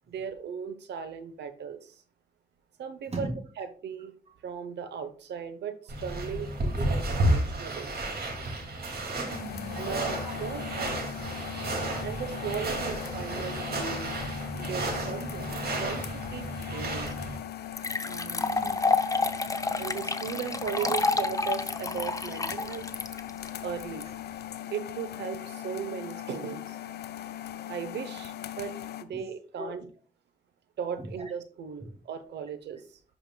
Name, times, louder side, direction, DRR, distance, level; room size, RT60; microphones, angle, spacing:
voice 1, 0.1-1.9 2.8-4.1 4.4-7.9 9.7-10.9 12.0-14.1 14.5-17.1 18.0-18.5 19.8-22.9 23.6-24.1 24.7-26.8 27.7-28.7 29.0-29.9 30.8-32.8, right 7 dB, 80° right, 11 dB, 0.8 m, -37 dB
sound 1, 5.9-17.4, right 1 dB, 65° right, 2.2 m, -32 dB
voice 2, 9.1-10.9 12.9-13.0 13.5-13.6 15.1-15.2 16.7-16.8 18.3-19.0 20.6-20.9 29.1-29.2 29.5-29.8 31.0-31.1, right 1 dB, 35° right, 2 dB, 2.5 m, -40 dB
sound 2, 9.3-29.0, left 11 dB, 70° left, 0.5 m, -40 dB
sound 3, 17.1-17.2 17.7-24.0, left 3 dB, 20° left, 0.6 m, -29 dB
10.5 x 5.0 x 2.2 m, 0.41 s
cardioid pair, 65°, 18 cm